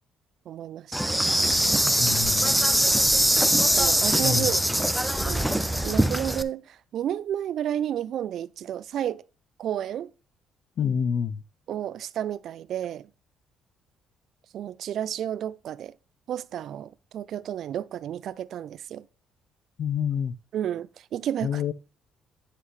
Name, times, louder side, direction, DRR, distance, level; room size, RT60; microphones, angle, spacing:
voice 1, 0.5-1.6 3.7-4.6 5.2-9.2 9.6-10.1 11.7-13.1 14.5-15.9 16.3-19.0 20.5-21.7, right 10 dB, 65° right, 0.4 m, -32 dB
Insect, 0.9-6.4, right 1 dB, 5° right, 0.6 m, -22 dB
voice 2, 2.0-2.6 4.2-4.5 10.8-11.4 19.8-20.3 21.4-21.7, left 8 dB, 60° left, 0.5 m, -27 dB
9.7 x 5.7 x 3.2 m
cardioid pair, 85°, 0 cm